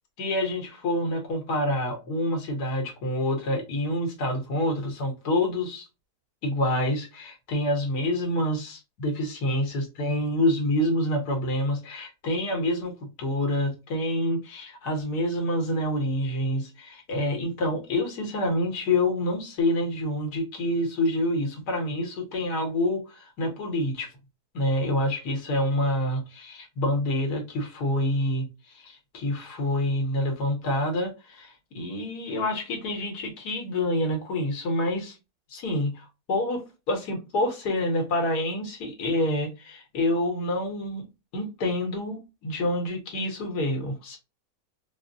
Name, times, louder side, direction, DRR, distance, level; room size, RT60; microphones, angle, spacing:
voice 1, 0.2-5.8 6.4-24.1 24.5-28.5 28.7-35.1 35.5-41.1 41.3-44.2, left 1 dB, 80° left, 1.6 m, -27 dB
4.0 x 2.1 x 2.6 m
omnidirectional pair, 1.7 m